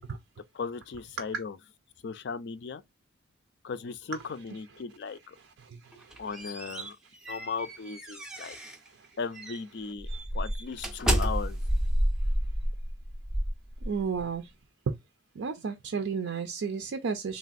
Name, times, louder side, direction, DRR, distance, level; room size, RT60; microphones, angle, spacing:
voice 1, 0.5-1.6 2.0-2.8 3.6-5.4 6.2-7.0 7.3-8.6 9.2-10.1 10.3-11.6, left 5 dB, 60° left, 0.4 m, -37 dB
voice 2, 5.6-6.2 13.8-14.5 14.9-15.0 15.4-17.4, right 5 dB, 70° right, 0.4 m, -33 dB
sound 1, 5.9-8.9 9.3-9.6 10.0-14.2, equal, 5° right, 0.4 m, -30 dB
3.2 x 2.4 x 2.4 m
head